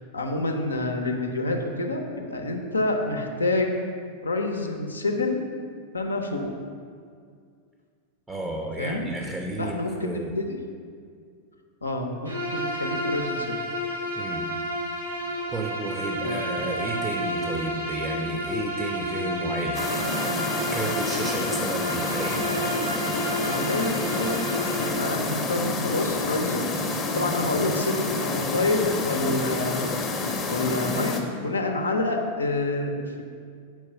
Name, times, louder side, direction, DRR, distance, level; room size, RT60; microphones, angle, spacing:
voice 1, 0.1-3.7 4.2-5.4 5.9-6.5 8.8-9.1 9.6-10.6 11.8-13.6 16.1-16.4 23.4-24.4 24.8-26.7 27.1-29.9 30.5-33.2, left 2 dB, 80° left, 3 dB, 0.6 m, -28 dB
voice 2, 8.3-10.3 14.2-14.5 15.5-20.2 20.7-22.5, right 1 dB, 10° right, 1 dB, 0.6 m, -32 dB
Bowed string instrument, 12.2-25.0, right 1 dB, 85° right, 1.1 m, -30 dB
sound 1, 19.7-31.2, left 3 dB, 25° left, 0.8 m, -28 dB
4.7 x 4.5 x 5.5 m, 2.2 s
figure-of-eight pair, 90°, 0 cm